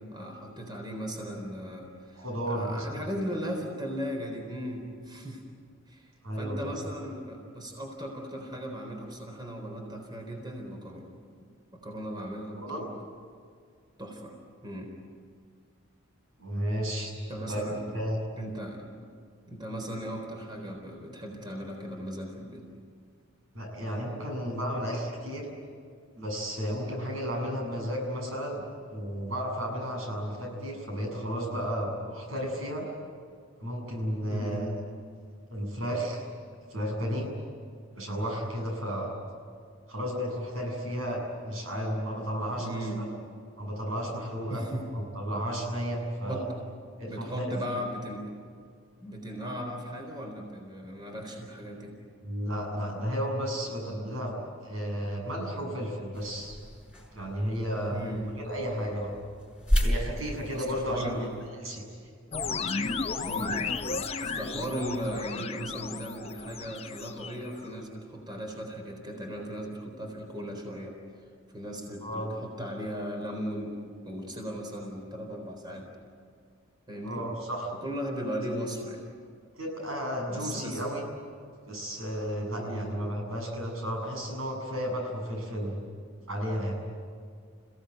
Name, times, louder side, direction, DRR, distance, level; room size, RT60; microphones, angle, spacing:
voice 1, 0.1-5.5 5.9-11.1 11.7-12.9 14.0-14.4 14.6-14.9 17.3-17.8 18.4-18.8 19.5-22.6 34.3-34.7 42.6-43.0 44.5-44.8 46.3-46.5 47.1-48.3 49.0-51.9 57.9-58.3 60.5-61.3 63.3-63.6 64.2-71.0 71.5-73.8 74.0-75.9 76.9-77.2 77.8-79.0 80.3-80.8 82.6-83.0, equal, 20° right, 2 dB, 4.1 m, -37 dB
voice 2, 2.2-2.8 6.2-6.6 12.5-12.8 16.4-17.1 17.5-18.2 23.5-25.5 26.2-28.6 28.9-32.9 33.6-34.7 35.5-36.2 36.7-37.3 37.9-39.1 39.9-42.9 43.6-44.6 44.9-46.5 47.0-47.5 52.2-54.3 54.6-56.6 57.1-59.1 59.8-61.1 61.6-61.8 72.0-72.3 77.0-77.7 79.6-81.0 81.7-85.8 86.3-86.8, equal, 85° right, 1 dB, 7.6 m, -33 dB
sound 1, 56.1-61.5, equal, 5° right, 6.7 m, -33 dB
sound 2, 62.3-67.7, left 4 dB, 30° left, 0.9 m, -34 dB
29.5 x 17.0 x 9.3 m, 2.1 s
head